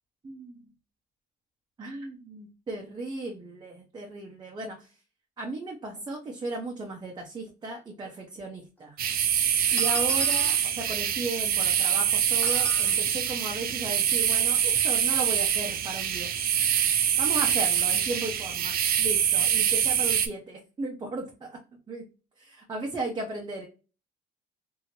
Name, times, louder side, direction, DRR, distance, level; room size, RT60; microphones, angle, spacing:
voice 1, 0.2-0.6 1.8-4.9 5.4-9.0 9.7-16.3 17.2-21.6 21.9-22.0 22.4-23.7, right 2 dB, 25° right, 0 dB, 0.8 m, -36 dB
sound 1, 7.8-7.9 8.8-8.9 9.8-10.6 12.4-13.0, left 2 dB, 10° left, 1.3 m, -37 dB
sound 2, 9.0-20.3, right 9 dB, 60° right, 0.6 m, -25 dB
2.9 x 2.8 x 2.7 m, 0.33 s
cardioid pair, 110°, 17 cm